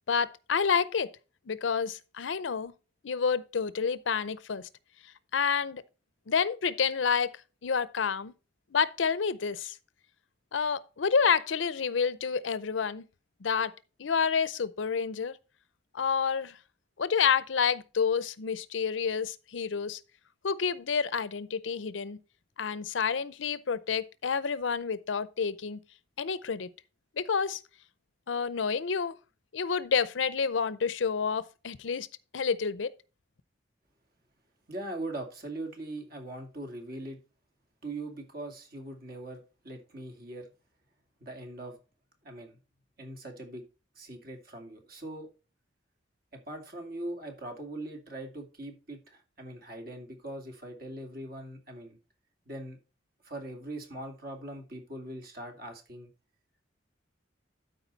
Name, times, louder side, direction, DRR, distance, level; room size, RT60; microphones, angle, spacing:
voice 1, 0.1-1.1 1.5-2.7 3.0-4.7 5.3-5.8 6.3-7.3 7.6-8.3 8.7-9.8 10.5-13.0 13.4-13.7 14.0-15.4 15.9-16.6 17.0-20.0 20.4-22.2 22.6-25.8 26.2-26.7 27.2-27.6 28.3-29.2 29.5-32.1 32.3-32.9, left 6 dB, 85° left, 0.6 m, -29 dB
voice 2, 34.7-37.2 37.8-40.5 41.2-41.8 42.2-42.6 43.0-43.6 44.0-45.3 46.3-52.0 52.5-52.8 53.2-56.1, right 1 dB, 55° right, 2.4 m, -41 dB
12.5 x 4.8 x 4.0 m
head